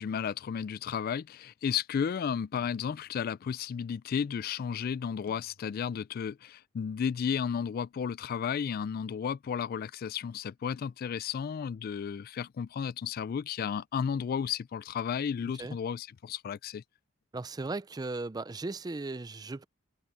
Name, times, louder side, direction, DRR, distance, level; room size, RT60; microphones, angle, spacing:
voice 1, 0.0-16.8, left 7 dB, 50° left, 0.3 m, -33 dB
sound 1, 2.6-3.7 5.3-6.5, left 2 dB, 70° left, 1.5 m, -64 dB
voice 2, 17.3-19.6, right 3 dB, 20° right, 0.4 m, -37 dB
head